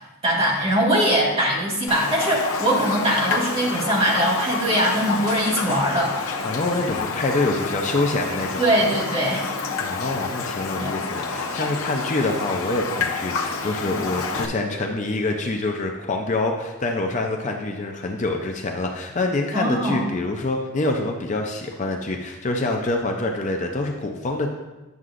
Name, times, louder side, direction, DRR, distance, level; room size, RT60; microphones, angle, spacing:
voice 1, 0.0-6.1 8.6-9.5 10.7-10.9 13.9-14.0 19.5-20.0, right 1 dB, 25° right, -5 dB, 1.7 m, -22 dB
Raindrop, 1.9-14.5, left 4 dB, 75° left, 0.7 m, -28 dB
voice 2, 6.4-8.6 9.8-24.5, left 2 dB, 35° left, 2 dB, 0.5 m, -26 dB
9.4 x 6.6 x 2.5 m, 1.1 s
head